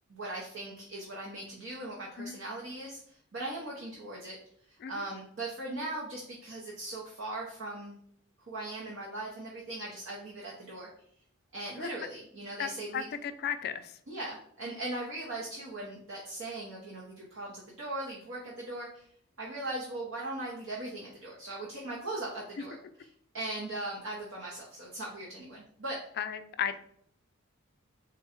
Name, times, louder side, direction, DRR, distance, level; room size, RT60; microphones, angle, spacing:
voice 1, 0.1-4.4 4.9-8.0 8.5-10.9 11.5-13.1 14.1-19.1 19.4-22.8 23.3-26.0, right 2 dB, 65° right, -3 dB, 0.8 m, -39 dB
voice 2, 12.6-13.9 26.2-26.7, left 8 dB, 50° left, 10 dB, 0.3 m, -35 dB
3.7 x 2.2 x 4.3 m, 0.67 s
head